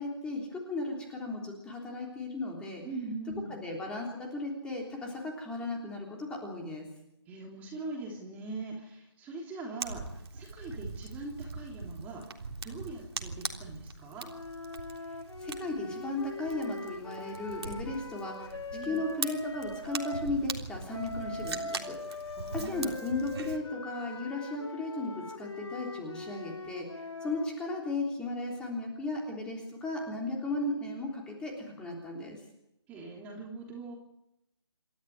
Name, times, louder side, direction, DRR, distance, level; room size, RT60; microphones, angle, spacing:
voice 1, 0.0-2.8 3.5-6.9 15.4-18.6 18.8-22.0 22.5-32.4, left 2 dB, 5° left, 0 dB, 3.4 m, -36 dB
voice 2, 2.8-3.6 7.3-14.3 18.7-19.0 22.3-22.9 32.9-33.9, right 3 dB, 10° right, 0 dB, 3.2 m, -42 dB
Fire, 9.8-23.6, right 4 dB, 60° right, 3.5 m, -41 dB
sound 1, 14.3-20.3 20.9-27.6, left 2 dB, 80° left, 4.9 m, -42 dB
28.0 x 13.0 x 9.4 m, 0.83 s
figure-of-eight pair, 160°, 15 cm